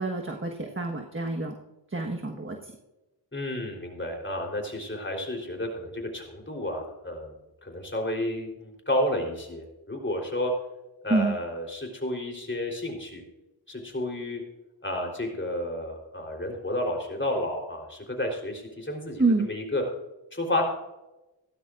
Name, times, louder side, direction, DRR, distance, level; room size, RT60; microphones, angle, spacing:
voice 1, 0.0-1.5 1.9-2.7 11.1-11.4 19.2-19.5, right 3 dB, 25° right, 2 dB, 1.4 m, -27 dB
voice 2, 3.3-7.3 7.6-10.5 11.0-13.2 13.7-14.4 14.8-19.8 20.3-20.7, left 1 dB, 25° left, 0 dB, 3.8 m, -31 dB
15.5 x 12.5 x 2.5 m, 1.0 s
cardioid pair, 60°, 45 cm